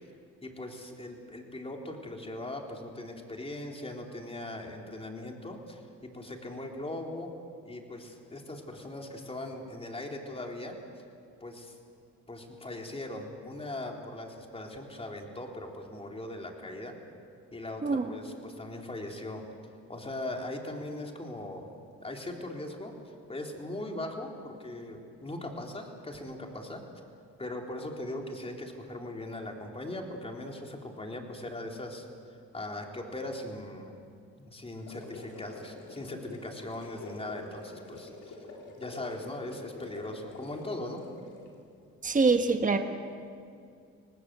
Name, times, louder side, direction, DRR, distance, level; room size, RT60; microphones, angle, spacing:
voice 1, 0.4-7.3 7.6-10.8 11.4-11.8 12.3-17.0 17.5-19.4 19.9-21.7 22.0-26.8 27.4-32.1 32.5-34.0 34.4-38.5 38.8-41.1, left 1 dB, 20° left, 2 dB, 3.7 m, -40 dB
sound 1, 34.7-41.5, left 3 dB, 85° left, 4.2 m, -46 dB
voice 2, 42.0-42.8, right 4 dB, 25° right, 6 dB, 1.4 m, -24 dB
25.5 x 19.0 x 8.1 m, 2.4 s
cardioid pair, 90°, 30 cm